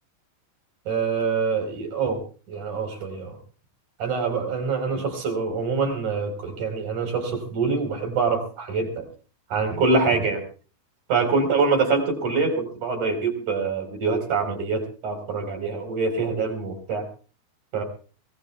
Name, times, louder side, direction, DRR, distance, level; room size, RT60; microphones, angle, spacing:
voice 1, 0.9-2.2 2.5-3.4 4.0-9.1 9.5-10.4 11.1-17.1 17.7-17.8, right 4 dB, 45° right, 6 dB, 5.4 m, -25 dB
23.5 x 20.0 x 2.3 m, 0.38 s
omnidirectional pair, 5.0 m